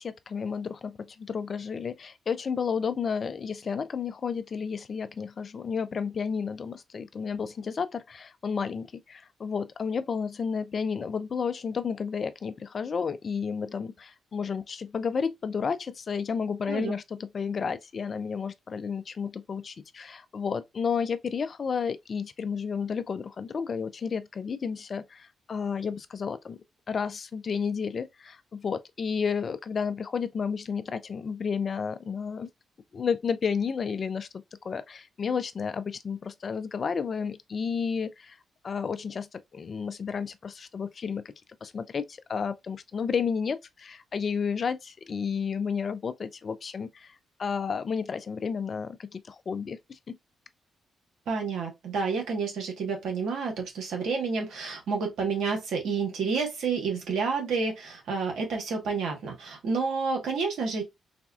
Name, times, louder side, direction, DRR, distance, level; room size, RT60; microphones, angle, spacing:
voice 1, 0.0-26.6 26.9-32.5 32.9-34.3 34.6-38.4 38.6-41.2 41.6-50.2, left 6 dB, 50° left, 0.4 m, -32 dB
voice 2, 51.3-60.8, right 4 dB, 75° right, 1.2 m, -29 dB
4.1 x 2.3 x 2.3 m
supercardioid pair, 55°, 0 cm